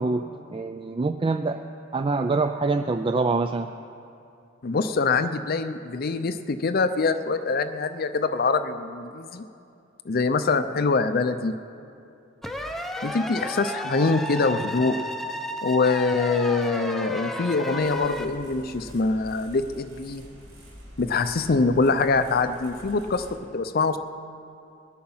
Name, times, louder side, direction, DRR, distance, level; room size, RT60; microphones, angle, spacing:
voice 1, 0.0-1.6 1.9-3.7, right 3 dB, 25° right, 7 dB, 0.4 m, -25 dB
voice 2, 4.6-9.4 10.1-11.5 13.0-15.0 15.6-20.2 21.0-23.3 23.5-24.0, left 4 dB, 50° left, 10 dB, 0.5 m, -24 dB
sound 1, 12.4-18.3, left 1 dB, ahead, 0.7 m, -32 dB
sound 2, 17.8-23.3, equal, 75° right, 4.5 m, -47 dB
21.0 x 8.7 x 5.6 m, 2.6 s
head